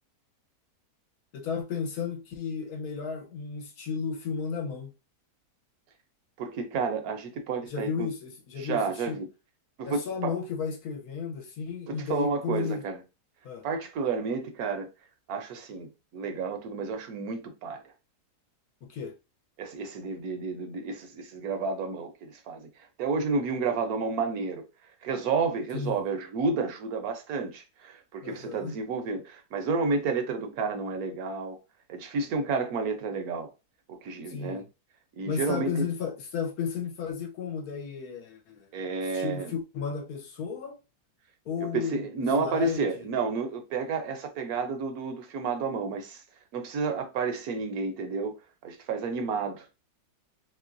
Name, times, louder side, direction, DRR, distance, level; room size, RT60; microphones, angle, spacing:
voice 1, 1.3-4.9 7.7-9.2 9.8-12.8 13.4-13.6 18.8-19.1 25.7-26.0 28.2-28.7 34.3-34.7 35.2-38.7 39.1-40.8 41.4-42.1 42.3-43.0, left 6 dB, 75° left, 1.2 m, -33 dB
voice 2, 6.4-8.1 8.6-9.3 9.8-10.4 11.9-13.0 13.6-14.9 15.3-15.9 16.1-17.8 19.6-22.7 23.0-24.6 25.0-31.6 31.9-33.5 33.9-34.6 35.2-35.9 38.7-39.5 41.7-46.2 46.5-48.4 48.6-49.7, right 4 dB, 70° right, 1.1 m, -31 dB
3.2 x 3.0 x 2.5 m
omnidirectional pair, 1.7 m